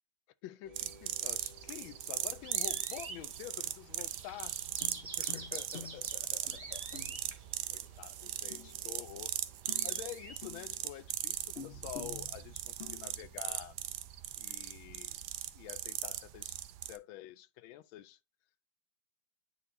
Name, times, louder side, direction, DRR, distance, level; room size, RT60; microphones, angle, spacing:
voice 1, 0.4-4.6 5.0-7.0 7.7-9.3 9.8-13.8 14.4-15.2 15.5-16.6 16.9-18.2, left 13 dB, 85° left, 1.3 m, -48 dB
sound 1, 0.6-10.9 11.9-12.7, right 3 dB, 30° right, 0.7 m, -51 dB
sound 2, 0.8-17.0, right 13 dB, 75° right, 1.0 m, -39 dB
sound 3, 4.7-9.4 9.6-11.0 11.6-13.6 13.9-14.0, left 6 dB, 40° left, 1.0 m, -50 dB
9.5 x 4.1 x 2.6 m
omnidirectional pair, 2.1 m